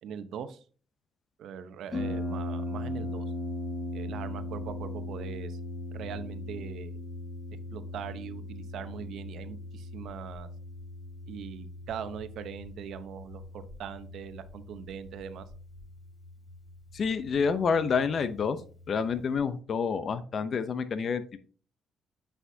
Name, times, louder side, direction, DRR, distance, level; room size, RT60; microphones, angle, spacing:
voice 1, 0.0-0.6 1.4-3.2 3.9-5.6 5.9-7.0 7.7-10.5 11.3-15.4, right 8 dB, 75° right, 11 dB, 0.7 m, -41 dB
Harp, 1.9-19.4, left 1 dB, 30° left, 3.5 m, -39 dB
voice 2, 16.9-18.6 18.9-21.4, left 5 dB, 55° left, 12 dB, 0.6 m, -28 dB
8.3 x 5.8 x 2.7 m, 0.40 s
cardioid pair, 90°, 0 cm